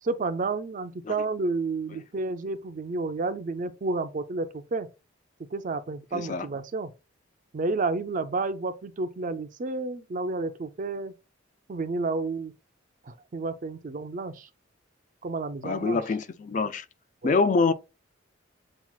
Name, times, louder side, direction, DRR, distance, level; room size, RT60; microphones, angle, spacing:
voice 1, 0.0-4.9 5.5-6.9 7.5-11.1 11.7-12.5 13.0-14.5 15.2-16.0 17.2-17.4, right 3 dB, 40° right, 0.4 m, -31 dB
voice 2, 6.1-6.5 15.6-16.9 17.2-17.7, left 4 dB, 40° left, 0.3 m, -25 dB
7.2 x 2.4 x 2.3 m
head